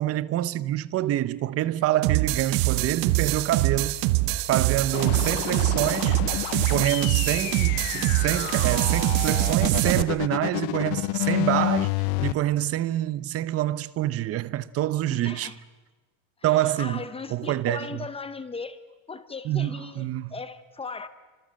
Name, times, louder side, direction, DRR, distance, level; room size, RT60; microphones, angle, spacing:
voice 1, 0.0-4.0 4.5-6.2 6.7-15.5 16.4-18.1 19.4-20.3, right 13 dB, 35° right, 0.8 m, -26 dB
sound 1, 2.0-10.0, right 17 dB, 65° right, 1.2 m, -24 dB
sound 2, 4.9-12.3, left 20 dB, 60° left, 0.9 m, -29 dB
voice 2, 15.1-15.6 16.5-18.8 19.1-21.1, left 4 dB, 15° left, 0.8 m, -38 dB
29.5 x 25.5 x 7.6 m
cardioid pair, 160°, 42 cm